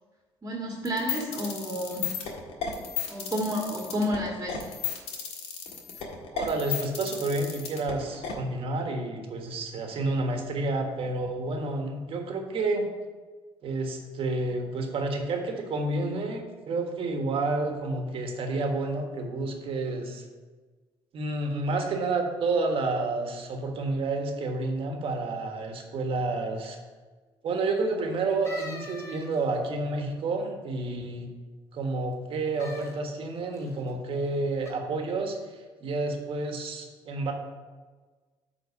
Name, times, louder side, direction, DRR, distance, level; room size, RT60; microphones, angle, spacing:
voice 1, 0.4-2.2 3.1-4.7, equal, 30° right, -2 dB, 1.8 m, -30 dB
sound 1, 0.8-8.3, left 8 dB, 75° left, 1.6 m, -33 dB
voice 2, 6.3-12.9 13.6-20.2 21.1-26.8 27.4-31.3 31.7-37.3, right 2 dB, 60° right, 3 dB, 1.5 m, -30 dB
sound 2, 28.4-29.7 32.5-32.9 33.5-33.9 34.6-34.7, left 2 dB, 25° left, 2.5 m, -42 dB
8.3 x 3.9 x 6.8 m, 1.4 s
supercardioid pair, 85°, 11 cm